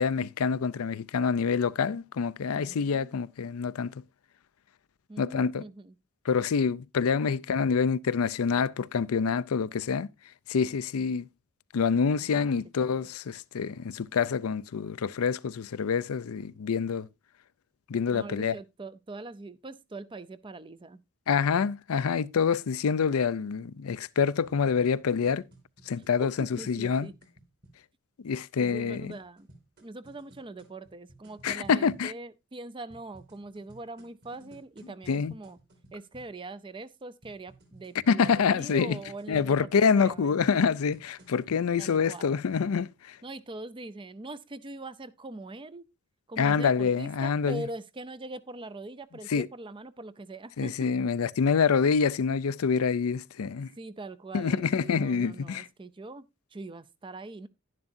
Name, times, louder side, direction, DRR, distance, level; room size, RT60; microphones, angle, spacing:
voice 1, 0.0-3.9 5.2-5.6 6.3-10.1 10.5-11.3 11.7-17.1 17.9-18.5 21.3-25.4 25.9-27.1 28.2-29.1 31.4-32.1 35.1-35.3 38.1-39.0 39.3-43.2 46.4-47.6 49.3-49.5 50.6-53.7 54.3-55.7, left 6 dB, 85° left, 0.5 m, -26 dB
voice 2, 2.5-3.2 5.1-6.0 12.2-12.6 12.8-13.0 18.1-21.0 26.2-27.2 28.6-29.5 29.8-35.6 35.9-40.4 41.8-42.4 43.2-45.8 46.3-50.9 53.8-57.5, right 2 dB, 25° right, 0.5 m, -42 dB
sound 1, 24.4-27.8 28.7-32.1 32.9-36.4 37.2-42.6, right 2 dB, 50° right, 3.3 m, -55 dB
10.5 x 10.5 x 2.6 m
head